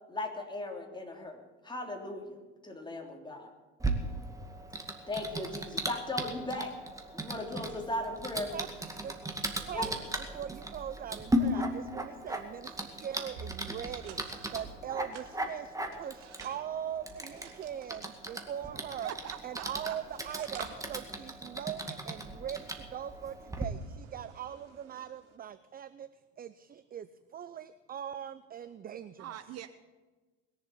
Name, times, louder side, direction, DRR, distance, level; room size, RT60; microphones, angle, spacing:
voice 1, 0.1-3.5 5.1-6.8 7.1-8.5 9.7-9.9, left 1 dB, 15° left, 1 dB, 3.3 m, -37 dB
Typing, 3.8-23.6, right 1 dB, 10° right, 2.1 m, -37 dB
voice 2, 9.7-10.1 10.3-19.1 19.4-26.1 26.4-29.4, right 9 dB, 25° right, 14 dB, 0.6 m, -41 dB
sound 1, 13.3-14.6 15.1-19.6 19.9-25.4, right 6 dB, 85° right, 1.9 m, -51 dB
voice 3, 19.0-20.0 29.2-29.7, right 10 dB, 45° right, 11 dB, 1.0 m, -42 dB
21.0 x 7.4 x 8.7 m, 1.3 s
hypercardioid pair, 90°, 35 cm